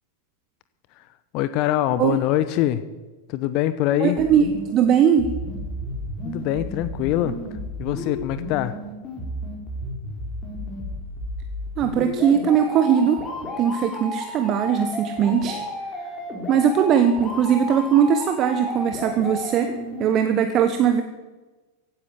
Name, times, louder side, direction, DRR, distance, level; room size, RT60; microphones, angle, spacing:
voice 1, 1.3-2.8 3.3-4.2 6.2-7.3 7.8-8.8, left 13 dB, 40° left, 12 dB, 0.9 m, -23 dB
voice 2, 4.0-4.5 4.7-5.3 11.8-13.2 13.6-15.6 16.5-19.7 20.0-21.0, right 8 dB, 35° right, 8 dB, 1.2 m, -20 dB
sound 1, 4.2-20.2, left 1 dB, 20° left, 4.9 m, -33 dB
16.0 x 10.5 x 8.3 m, 1.2 s
figure-of-eight pair, 90°, 0 cm